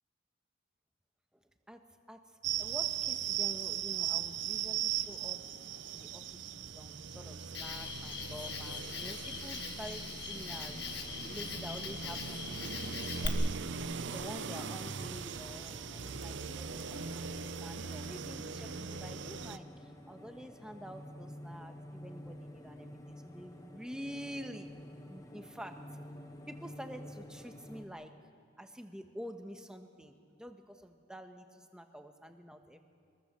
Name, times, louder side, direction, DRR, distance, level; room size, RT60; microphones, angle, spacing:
sound 1, 2.4-19.6, right 8 dB, 65° right, 0.7 m, -39 dB
voice 1, 2.6-5.4 5.9-13.6 13.9-24.7 25.1-25.7 26.5-28.1 28.6-32.8, equal, 5° right, 5 dB, 1.2 m, -48 dB
Cricket, 7.5-13.3, left 5 dB, 55° left, 1.6 m, -41 dB
sound 2, 10.5-27.9, equal, 15° left, 1.2 m, -51 dB
25.5 x 22.0 x 6.8 m, 2.3 s
head